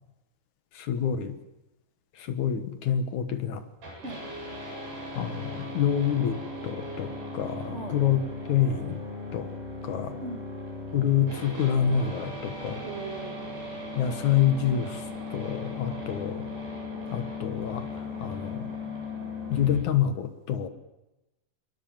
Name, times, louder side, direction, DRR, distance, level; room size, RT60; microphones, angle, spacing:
voice 1, 0.8-1.4 2.2-3.6 5.2-8.2 8.5-9.0 9.3-9.5 9.8-10.2 10.9-12.8 14.0-15.0 15.3-16.5 17.1-17.9 18.2-18.7 19.5-20.7, left 9 dB, 60° left, 9 dB, 2.2 m, -27 dB
sound 1, 3.8-19.8, left 2 dB, 70° right, 10.0 m, -37 dB
voice 2, 12.8-13.4 15.8-16.1, right 3 dB, 35° right, 3 dB, 1.0 m, -39 dB
27.0 x 23.0 x 7.5 m, 0.97 s
omnidirectional pair, 5.0 m